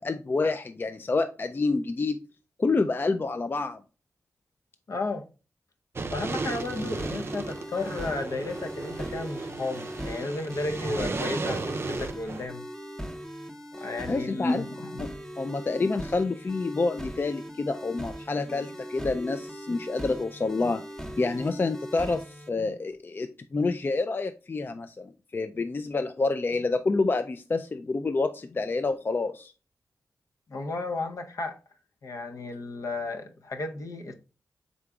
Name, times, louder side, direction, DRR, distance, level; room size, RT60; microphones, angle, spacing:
voice 1, 0.0-2.2 2.6-3.8 13.8-14.6 15.0-20.8 21.2-29.5, left 3 dB, 35° left, 0.3 m, -28 dB
voice 2, 4.9-5.3 6.1-12.6 13.7-15.0 30.5-31.6 32.0-34.1, left 2 dB, 65° left, 0.7 m, -33 dB
sound 1, 6.0-12.5, right 3 dB, 45° right, 0.5 m, -34 dB
sound 2, 6.5-22.5, equal, 10° left, 0.8 m, -40 dB
3.9 x 3.4 x 3.5 m
cardioid pair, 50°, 6 cm